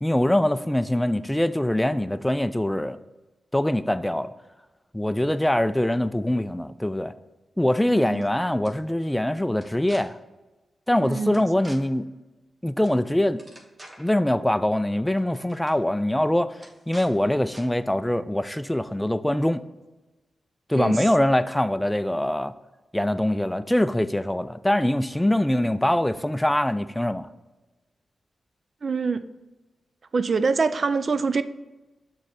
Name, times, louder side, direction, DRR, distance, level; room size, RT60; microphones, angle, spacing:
voice 1, 0.0-3.0 3.5-4.3 4.9-7.1 7.6-10.2 10.9-12.1 12.6-13.4 14.0-16.6 16.9-19.6 20.7-22.5 22.9-27.3, left 1 dB, 10° left, 0.4 m, -23 dB
voice 2, 7.8-8.2 11.0-11.4 20.8-21.0 28.8-29.2 30.1-31.4, right 4 dB, 60° right, 0.4 m, -25 dB
sound 1, 7.9-8.3 8.6-8.7 9.5-10.0 11.3-11.8 12.8-13.0 13.3-14.1 15.1-15.2 15.5-15.8 16.6-17.1 17.5-17.6, right 1 dB, 30° right, 1.4 m, -46 dB
6.3 x 3.2 x 5.5 m
supercardioid pair, 45°, 0 cm